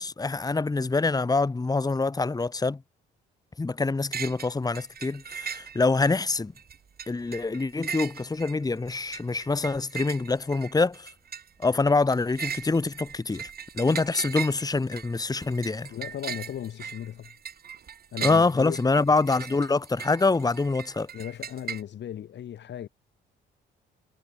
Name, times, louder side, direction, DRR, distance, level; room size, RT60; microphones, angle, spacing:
voice 1, 0.0-2.8 3.6-6.5 7.1-11.1 11.6-13.5 13.8-15.9 18.2-21.1, left 3 dB, 20° left, 1.6 m, -25 dB
sound 1, 4.1-4.5 4.8-6.1 6.6-21.8, right 7 dB, 50° right, 3.1 m, -38 dB
voice 2, 15.9-17.3 18.1-18.8 21.1-22.9, left 10 dB, 65° left, 2.0 m, -36 dB
cardioid pair, 90°, 20 cm